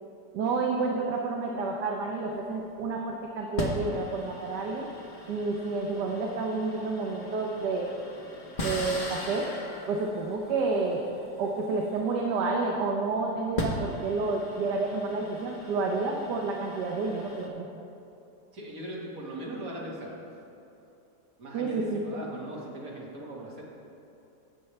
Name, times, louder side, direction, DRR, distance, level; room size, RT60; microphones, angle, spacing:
voice 1, 0.3-4.9 5.3-7.9 8.6-9.5 9.9-11.1 11.4-17.7 21.5-22.1, right 3 dB, 70° right, 0 dB, 1.3 m, -30 dB
sound 1, 2.3-2.6 3.6-12.6 13.3-17.5, left 1 dB, 35° left, 1.0 m, -39 dB
voice 2, 18.5-20.1 21.4-23.6, right 1 dB, 50° right, -4 dB, 2.2 m, -39 dB
17.0 x 6.8 x 3.3 m, 2.8 s
omnidirectional pair, 2.0 m